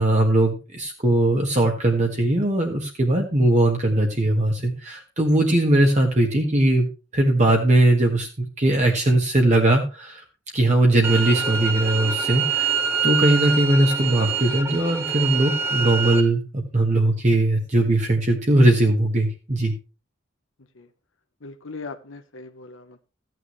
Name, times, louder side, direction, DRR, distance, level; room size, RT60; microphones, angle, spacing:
voice 1, 0.0-6.9 7.1-10.2 10.5-19.7, right 1 dB, 35° right, 1 dB, 1.6 m, -20 dB
sound 1, 11.0-16.2, right 5 dB, 10° right, 1.1 m, -25 dB
voice 2, 21.4-23.0, left 3 dB, 85° left, 6 dB, 1.0 m, -39 dB
15.0 x 9.3 x 3.2 m, 0.31 s
head